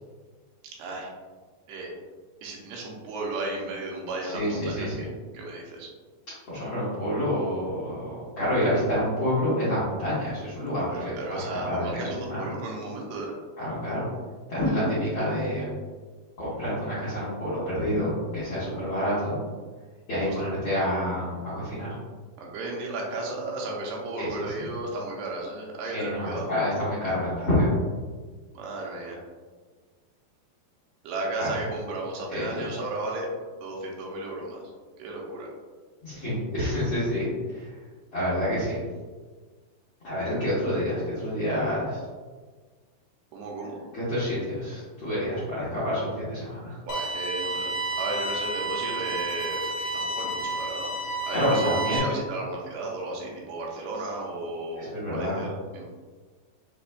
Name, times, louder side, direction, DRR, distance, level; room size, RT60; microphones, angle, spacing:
voice 1, 0.8-1.1 1.7-1.9 2.4-4.9 5.3-5.9 10.9-13.4 20.2-20.4 22.4-26.5 28.5-29.2 31.0-33.3 33.6-34.6 35.0-35.5 43.3-43.8 46.8-50.9 51.2-55.8, right 2 dB, 85° right, -2 dB, 2.8 m, -34 dB
voice 2, 4.2-5.0 6.5-11.0 11.3-12.5 13.6-14.0 14.5-15.7 16.4-19.4 20.1-21.9 24.2-24.7 25.9-27.7 31.4-31.5 32.3-32.7 36.0-37.2 37.5-37.7 38.1-38.8 40.0-42.0 43.9-46.8 51.3-52.1 54.8-55.4, equal, 70° left, -10 dB, 1.2 m, -28 dB
sound 1, 46.9-52.0, right 2 dB, 85° left, 2.7 m, -31 dB
6.8 x 2.5 x 2.2 m, 1.4 s
omnidirectional pair, 4.6 m